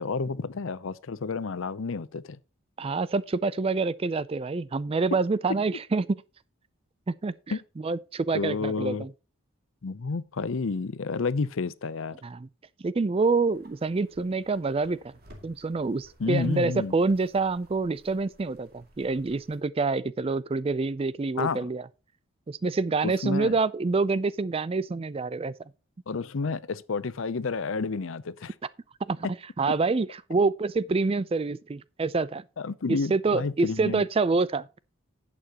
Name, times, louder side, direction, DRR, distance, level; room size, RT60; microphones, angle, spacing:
voice 1, 0.0-2.4 7.5-7.6 8.3-9.1 9.8-12.2 16.2-16.9 21.4-21.6 23.0-23.5 26.1-28.5 29.2-29.3 32.6-34.0, left 4 dB, 65° left, 0.6 m, -30 dB
voice 2, 2.8-6.2 7.1-9.1 12.2-12.5 12.8-15.1 15.4-21.8 22.5-25.5 29.0-29.3 29.6-32.4 32.9-34.7, right 3 dB, 25° right, 0.4 m, -27 dB
sound 1, 13.5-19.6, equal, 45° right, 2.3 m, -56 dB
11.5 x 8.7 x 2.9 m
head